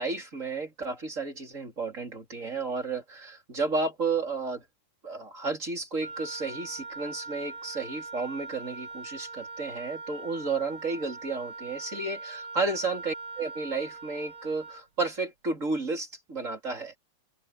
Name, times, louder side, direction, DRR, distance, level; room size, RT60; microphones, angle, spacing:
voice 1, 0.0-4.6 5.0-17.0, right 3 dB, 25° right, 4.0 m, -32 dB
Wind instrument woodwind instrument, 6.0-14.9, right 3 dB, 45° right, 6.8 m, -42 dB
open air
omnidirectional pair, 3.4 m